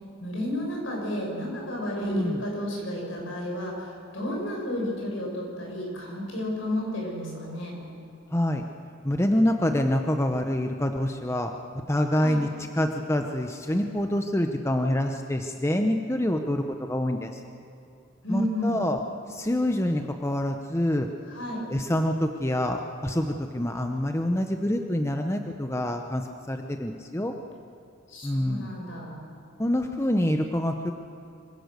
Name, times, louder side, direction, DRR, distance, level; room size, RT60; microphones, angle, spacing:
voice 1, 0.2-7.8 12.1-12.4 18.2-18.8 21.3-21.6 28.1-29.2, left 1 dB, 70° left, -2 dB, 6.8 m, -32 dB
voice 2, 2.0-2.4 8.3-8.6 9.0-11.5 11.9-12.5 12.7-17.4 18.3-19.0 19.3-21.1 21.7-27.3 28.2-28.7 29.6-30.9, left 1 dB, 15° left, 5 dB, 0.8 m, -26 dB
25.0 x 17.0 x 6.7 m, 2.7 s
head